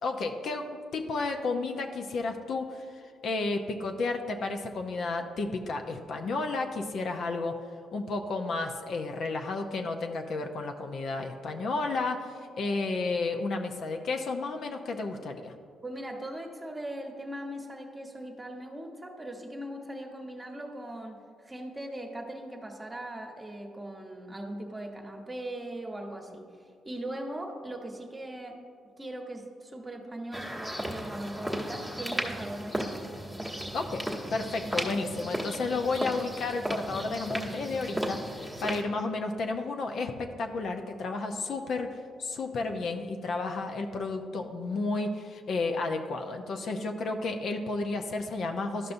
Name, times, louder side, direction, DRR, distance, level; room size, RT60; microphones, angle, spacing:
voice 1, 0.0-2.9 3.2-7.5 7.9-15.5 33.7-34.0 34.3-41.9 42.2-48.9, left 3 dB, 60° left, 4 dB, 0.6 m, -32 dB
voice 2, 15.8-28.6 29.0-33.0, right 1 dB, 15° right, 2 dB, 1.1 m, -40 dB
sound 1, 30.3-38.8, equal, 5° left, 1.1 m, -35 dB
12.0 x 5.4 x 2.6 m, 2.2 s
cardioid pair, 90°, 0 cm